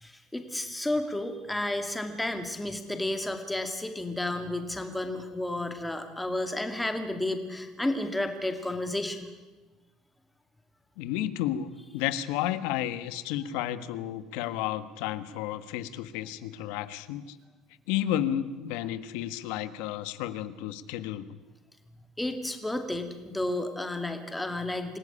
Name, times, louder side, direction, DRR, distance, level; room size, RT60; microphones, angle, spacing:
voice 1, 0.0-9.3 22.2-25.0, left 1 dB, 5° left, 6 dB, 2.3 m, -32 dB
voice 2, 11.0-17.4 17.9-21.4, left 12 dB, 90° left, 13 dB, 1.5 m, -32 dB
26.5 x 16.5 x 10.0 m, 1.2 s
cardioid pair, 155°, 0 cm